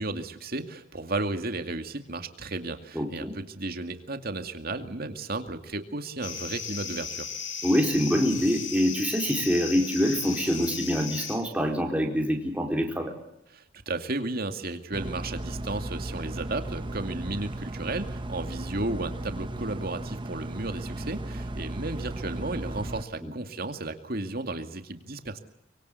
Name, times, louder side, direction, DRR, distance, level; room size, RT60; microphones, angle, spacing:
voice 1, 0.0-7.3 13.5-25.4, right 2 dB, 50° right, 7 dB, 2.4 m, -34 dB
voice 2, 2.9-3.3 7.6-13.1 23.2-23.3, equal, 5° right, 1 dB, 4.3 m, -25 dB
sound 1, 6.2-11.4, left 6 dB, 75° left, 4.8 m, -36 dB
sound 2, 14.9-23.0, right 1 dB, 25° right, 0.9 m, -35 dB
24.5 x 23.0 x 8.4 m, 0.81 s
head